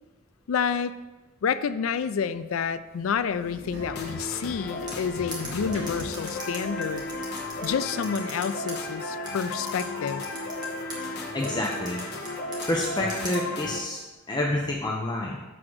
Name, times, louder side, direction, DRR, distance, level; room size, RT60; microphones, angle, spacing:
voice 1, 0.5-0.9 1.4-7.1 7.6-10.2, left 6 dB, 85° left, 13 dB, 0.4 m, -29 dB
sound 1, 2.9-7.9, right 1 dB, 65° right, 2.5 m, -45 dB
sound 2, 3.8-13.8, left 2 dB, 55° left, 1.1 m, -34 dB
sound 3, 4.9-8.7 9.3-11.0 11.4-13.4, right 1 dB, 20° right, 1.8 m, -38 dB
voice 2, 11.3-12.0 12.7-14.0 14.3-15.4, left 1 dB, 20° left, -2 dB, 0.7 m, -28 dB
7.7 x 3.8 x 6.2 m, 1.2 s
head